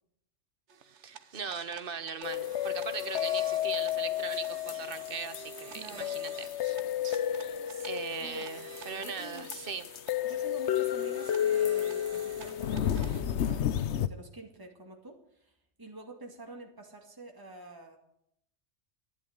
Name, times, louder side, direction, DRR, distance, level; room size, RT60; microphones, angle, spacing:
sound 1, 0.7-13.2, right 8 dB, 85° right, 1.3 m, -50 dB
voice 1, 1.0-6.8 7.0-7.5 7.8-9.9, right 6 dB, 55° right, 11 dB, 1.3 m, -39 dB
sound 2, 2.2-14.1, left 11 dB, 80° left, 1.0 m, -32 dB
voice 2, 5.7-6.1 8.2-8.5 9.0-9.5 10.2-18.0, right 2 dB, 20° right, 1 dB, 2.2 m, -47 dB
12.0 x 11.5 x 8.0 m, 0.76 s
omnidirectional pair, 1.2 m